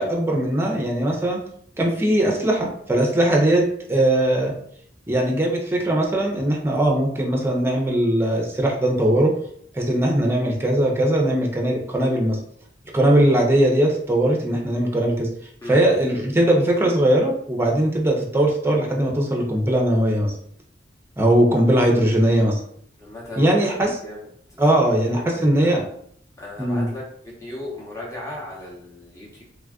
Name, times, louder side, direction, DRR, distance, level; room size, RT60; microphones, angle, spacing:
voice 1, 0.0-1.4 1.8-4.5 5.1-9.3 9.7-12.4 12.9-15.3 15.6-20.3 21.2-22.6 23.4-24.0 24.6-25.9 26.6-26.9, right 1 dB, 15° right, -1 dB, 0.5 m, -20 dB
voice 2, 23.0-24.2 25.0-25.2 25.6-25.8 26.4-27.0 27.4-29.4, left 1 dB, 15° left, -5 dB, 0.9 m, -36 dB
3.2 x 2.4 x 2.3 m, 0.64 s
head